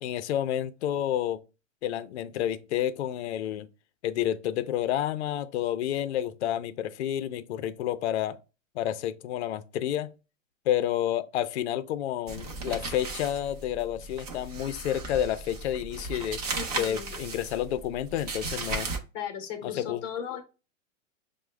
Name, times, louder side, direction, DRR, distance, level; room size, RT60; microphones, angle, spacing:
voice 1, 0.0-1.4 1.8-3.7 4.0-8.4 8.8-10.1 10.7-16.4 16.8-18.9 19.6-20.0, left 11 dB, 60° left, 0.5 m, -30 dB
sound 1, 12.3-19.0, right 3 dB, 30° right, 0.5 m, -36 dB
voice 2, 16.5-17.1 19.1-20.4, left 8 dB, 20° left, 0.7 m, -36 dB
5.9 x 2.1 x 3.1 m
hypercardioid pair, 170°, 39 cm